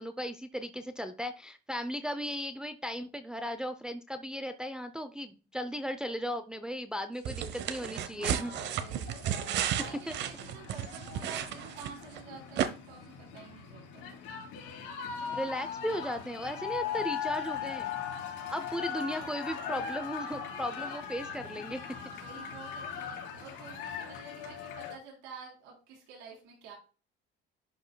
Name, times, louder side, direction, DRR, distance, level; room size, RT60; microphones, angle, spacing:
voice 1, 0.0-8.5 10.1-10.2 15.3-17.9 18.5-21.8, equal, 5° right, 7 dB, 0.5 m, -36 dB
sound 1, 7.3-12.2 12.6-12.7, right 10 dB, 65° right, 0.8 m, -33 dB
sound 2, 8.1-25.0, left 7 dB, 80° left, 3.1 m, -40 dB
voice 2, 8.1-14.3 18.0-18.9 19.2-19.7 20.6-21.0 22.1-26.7, right 5 dB, 85° right, -1 dB, 3.4 m, -50 dB
11.0 x 5.3 x 2.2 m, 0.35 s
cardioid pair, 135°, 20 cm